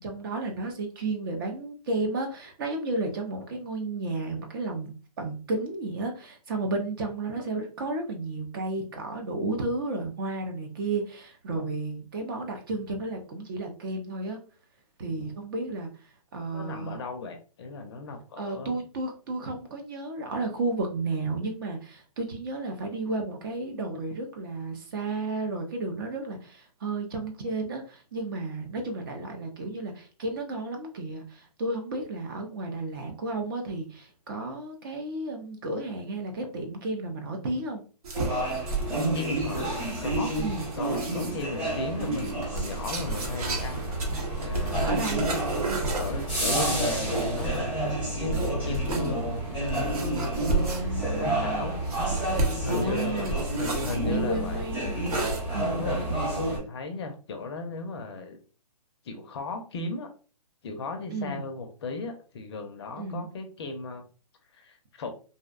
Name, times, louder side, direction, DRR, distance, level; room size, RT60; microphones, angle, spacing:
voice 1, 0.0-14.4 15.0-15.9 16.3-17.0 18.4-37.8 40.4-40.7 44.9-45.4 50.7-51.9 52.7-53.5 54.0-55.1 55.5-56.2 61.1-61.4 63.0-63.3, right 2 dB, 35° right, 3 dB, 0.5 m, -33 dB
voice 2, 16.5-18.7 39.1-40.4 40.8-43.9 44.4-44.9 45.9-47.7 48.1-50.8 51.2-51.8 52.6-54.6 55.6-58.4 59.0-60.1 60.6-64.0 64.5-65.1, left 3 dB, 40° left, 5 dB, 0.5 m, -36 dB
sound 1, 38.0-41.4 42.0-47.8 48.3-49.1 49.7-51.1 51.8-54.0 55.1-55.4, right 3 dB, 65° right, 0.9 m, -33 dB
sound 2, 38.1-56.6, right 1 dB, 5° right, 0.8 m, -30 dB
2.6 x 2.0 x 2.4 m, 0.36 s
hypercardioid pair, 150°, 20 cm